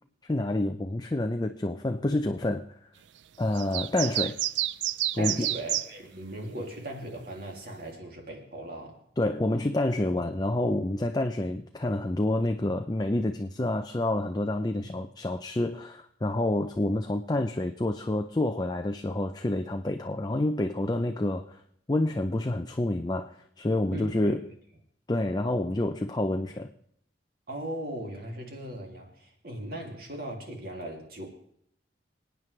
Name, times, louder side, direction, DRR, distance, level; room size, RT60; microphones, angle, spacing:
voice 1, 0.2-2.6 3.4-4.4 5.1-5.5 9.2-21.6 21.9-24.5 25.1-26.7, left 1 dB, 25° left, 6 dB, 0.5 m, -28 dB
sound 1, 3.6-5.9, right 14 dB, 90° right, 0.4 m, -29 dB
voice 2, 5.2-9.0 14.8-14.9 23.9-24.3 27.5-31.3, right 1 dB, 55° right, 1 dB, 2.7 m, -38 dB
27.0 x 9.2 x 3.3 m, 0.68 s
head